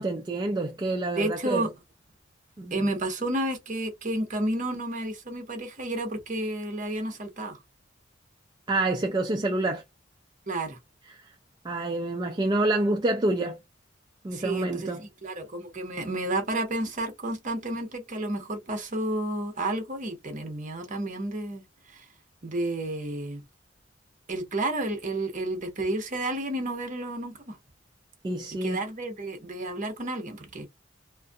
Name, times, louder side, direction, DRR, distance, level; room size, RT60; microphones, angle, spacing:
voice 1, 0.0-1.7 2.6-2.7 8.7-9.8 11.1-11.2 11.6-13.6 14.2-15.0 28.2-28.8, right 2 dB, 25° right, 0.4 m, -27 dB
voice 2, 1.1-1.7 2.7-7.6 10.5-10.8 14.3-21.6 21.9-22.0 22.4-23.4 24.3-27.6 28.5-30.7, right 1 dB, 45° right, 1.0 m, -31 dB
2.6 x 2.4 x 2.3 m
head